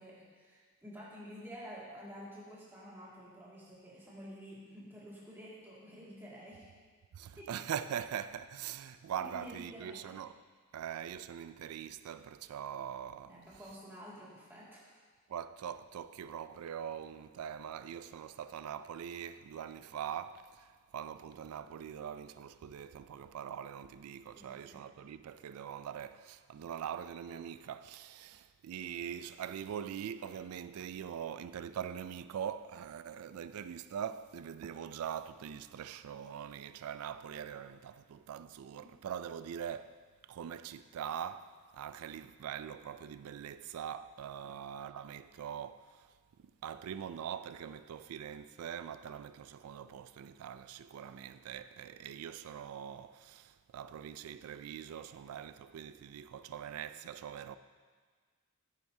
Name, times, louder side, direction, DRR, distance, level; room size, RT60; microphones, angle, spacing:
voice 1, 0.0-6.7 7.4-7.5 9.2-10.1 13.3-15.0 24.4-24.8 38.8-38.9 44.4-44.5, equal, 10° right, 2.2 m, -50 dB
voice 2, 7.1-10.3 10.7-13.3 15.3-39.9 40.3-46.0 46.4-57.6, right 8 dB, 85° right, 0.3 m, -43 dB
10.5 x 9.2 x 2.7 m
head